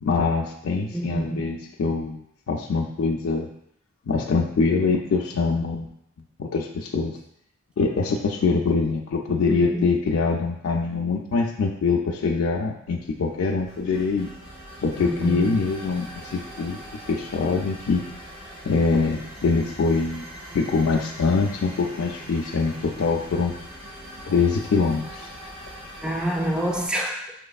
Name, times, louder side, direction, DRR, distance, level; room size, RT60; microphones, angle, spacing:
voice 1, 0.0-3.5 4.1-5.9 6.4-7.2 7.8-14.3 14.8-16.8 17.1-18.0 18.6-20.2 20.5-23.5 24.3-25.3, left 4 dB, 80° left, 1 dB, 0.4 m, -24 dB
voice 2, 0.9-1.6 9.5-9.9 15.0-15.5 26.0-27.3, right 1 dB, 5° right, 0 dB, 0.4 m, -27 dB
sound 1, 12.9-26.9, equal, 30° right, 1.3 m, -42 dB
6.0 x 3.1 x 2.3 m, 0.72 s
head